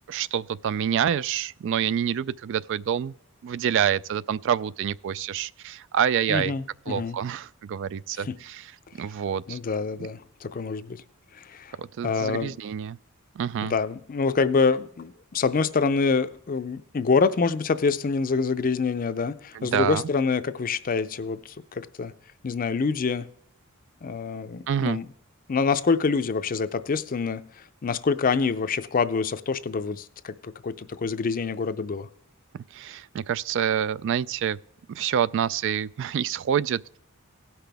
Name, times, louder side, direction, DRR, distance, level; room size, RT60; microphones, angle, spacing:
voice 1, 0.1-3.1 3.4-6.5 6.9-8.7 9.0-9.6 10.0-10.1 11.8-13.0 13.4-13.7 19.5-20.1 24.7-25.0 32.7-34.6 34.9-37.0, right 9 dB, 60° right, 0.3 m, -27 dB
voice 2, 6.3-7.2 8.2-8.3 9.5-11.0 11.3-11.7 12.0-12.5 13.6-22.1 22.4-23.3 24.0-25.1 25.5-27.5 27.8-32.1, left 4 dB, 40° left, 0.5 m, -26 dB
17.5 x 5.9 x 3.4 m
head